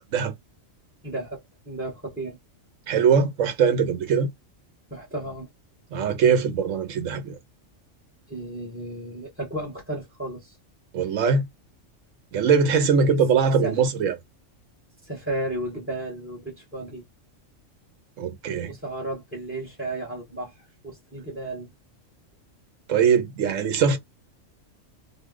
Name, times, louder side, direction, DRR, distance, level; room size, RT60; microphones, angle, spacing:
voice 1, 1.0-2.4 4.9-5.5 8.3-10.6 13.0-13.2 13.6-13.8 15.0-17.0 18.6-21.7, right 1 dB, 10° right, 0.8 m, -34 dB
voice 2, 2.9-4.3 5.9-7.4 10.9-11.5 12.3-14.1 18.2-18.7 22.9-24.0, right 6 dB, 75° right, 1.1 m, -21 dB
2.8 x 2.1 x 3.6 m
omnidirectional pair, 1.4 m